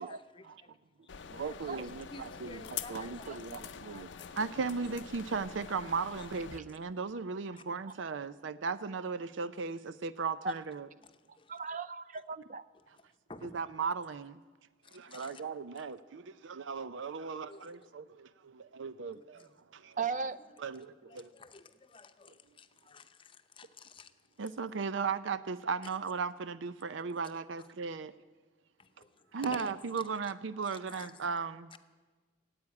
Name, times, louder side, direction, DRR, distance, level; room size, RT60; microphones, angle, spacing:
voice 1, 0.0-0.7 1.2-4.3 4.8-5.0 11.3-11.5 13.3-13.6 14.8-15.4 17.5-17.7 19.1-19.5 20.7-24.1 26.9-27.0 28.8-29.7 30.0-30.1 30.7-31.2 31.7-31.8, left 3 dB, 30° left, 9 dB, 0.7 m, -52 dB
sound 1, 1.1-6.6, left 7 dB, 80° left, 0.6 m, -45 dB
voice 2, 1.3-2.0 2.4-4.1 4.4-10.9 13.4-14.4 14.9-20.0 20.6-21.3 24.4-28.1 29.3-31.7, right 5 dB, 90° right, 14 dB, 0.5 m, -37 dB
voice 3, 2.9-3.4 10.4-10.5 11.3-12.7 20.0-20.4, right 4 dB, 40° right, 15 dB, 0.5 m, -37 dB
15.0 x 8.6 x 9.6 m, 1.3 s
head